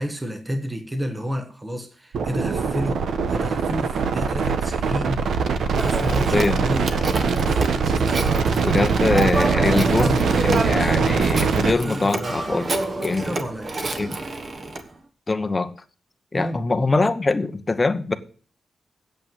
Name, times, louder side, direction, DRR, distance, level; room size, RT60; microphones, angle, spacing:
voice 1, 0.0-3.0 3.3-7.0 11.8-12.5 13.2-14.0 16.3-16.6, equal, 10° right, 1.1 m, -30 dB
sound 1, 2.1-11.7, right 5 dB, 70° right, 1.0 m, -22 dB
Telephone, 5.8-14.8, right 2 dB, 35° right, 1.3 m, -28 dB
voice 2, 6.1-6.6 8.6-12.7 13.0-13.3 14.0-14.2 15.3-15.7 16.3-18.1, left 3 dB, 20° left, 0.9 m, -23 dB
8.4 x 7.9 x 9.0 m
wide cardioid pair, 170°, 0 cm